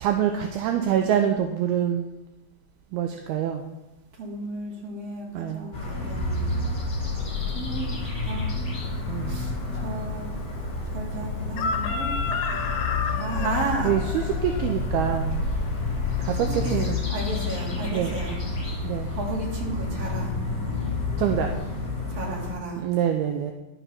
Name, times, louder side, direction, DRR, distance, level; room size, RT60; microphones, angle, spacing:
voice 1, 0.0-2.1 2.9-3.6 5.3-5.7 9.1-9.4 13.8-15.4 16.2-17.0 17.9-18.1 18.8-19.1 21.2-21.6 22.8-23.5, right 9 dB, 80° right, 4 dB, 2.4 m, -25 dB
voice 2, 4.2-6.7 7.5-7.9 8.2-8.5 9.3-10.4 10.9-12.2 13.2-14.0 16.3-18.4 19.1-20.3 22.1-22.8, right 2 dB, 40° right, -2 dB, 3.2 m, -33 dB
sound 1, 5.7-22.5, left 3 dB, 25° left, 2.6 m, -29 dB
Chicken rooster, 8.8-17.1, left 4 dB, 75° left, 2.7 m, -34 dB
11.5 x 6.6 x 6.0 m, 1.0 s
omnidirectional pair, 4.9 m